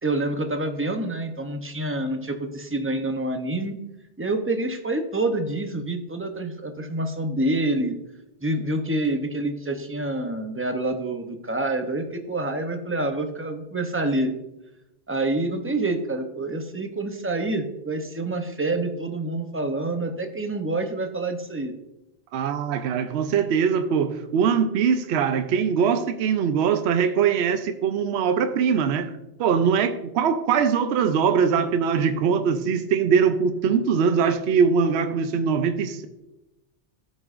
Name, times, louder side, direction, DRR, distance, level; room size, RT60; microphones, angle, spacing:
voice 1, 0.0-3.8 4.2-8.0 8.4-14.3 15.1-21.7, right 2 dB, 15° right, 0.5 m, -27 dB
voice 2, 22.3-29.1 29.4-36.1, right 6 dB, 70° right, 0.8 m, -22 dB
13.5 x 5.3 x 2.5 m
omnidirectional pair, 1.2 m